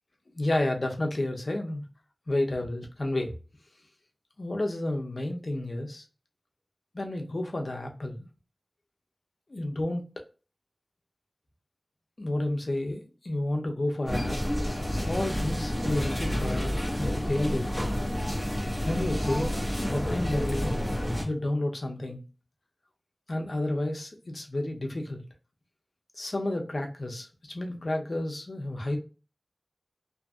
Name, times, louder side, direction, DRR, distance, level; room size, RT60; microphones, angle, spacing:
voice 1, 0.3-1.8 2.3-3.3 4.4-6.0 6.9-8.3 9.5-10.2 12.2-14.4 14.9-17.9 18.8-19.6 19.9-20.8 21.2-22.2 23.3-25.2 26.1-29.0, left 1 dB, 65° left, 3 dB, 0.7 m, -31 dB
sound 1, 14.1-21.2, equal, 5° left, 1.3 m, -29 dB
2.7 x 2.6 x 2.3 m, 0.35 s
wide cardioid pair, 45°, 0 cm